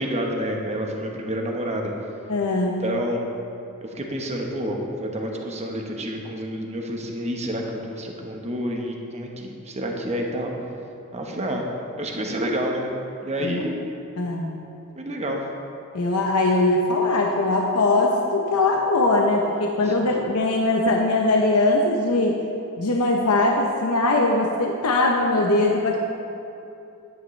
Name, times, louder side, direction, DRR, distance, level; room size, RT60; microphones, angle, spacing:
voice 1, 0.0-1.9 2.8-3.2 3.8-10.5 11.1-11.7 12.0-12.9 13.2-13.8 15.0-15.4 19.8-19.9, equal, 30° right, 1 dB, 1.1 m, -29 dB
voice 2, 2.3-2.9 13.4-13.6 14.2-14.6 15.9-22.3 22.8-26.1, left 2 dB, 85° left, 0 dB, 0.8 m, -21 dB
11.0 x 9.5 x 3.2 m, 2.7 s
head